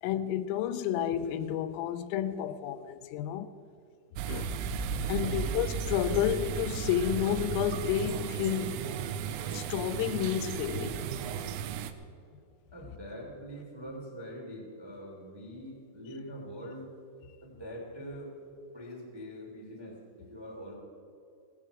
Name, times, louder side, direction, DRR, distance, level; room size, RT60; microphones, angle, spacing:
voice 1, 0.0-3.5 4.3-4.5 5.1-8.8 9.5-11.1, left 10 dB, 85° left, 3.4 m, -31 dB
sound 1, 4.2-11.9, right 7 dB, 90° right, 3.2 m, -34 dB
voice 2, 5.0-5.5 12.7-16.9 17.4-18.4 18.7-20.8, equal, 20° right, 0.6 m, -44 dB
17.0 x 15.0 x 4.8 m
omnidirectional pair, 5.8 m